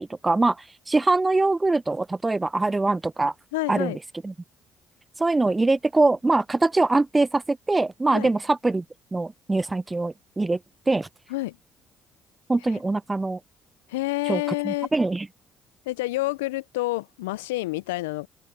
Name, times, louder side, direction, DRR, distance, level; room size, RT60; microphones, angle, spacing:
voice 1, 0.0-3.3 3.7-4.3 5.2-8.8 9.1-10.6 10.9-11.1 12.5-13.4 14.3-15.3, right 2 dB, 20° right, 0.3 m, -23 dB
voice 2, 3.5-4.0 8.1-8.3 11.3-11.6 13.9-14.9 15.9-18.3, left 20 dB, 90° left, 0.3 m, -28 dB
open air
hypercardioid pair, 55°, 0 cm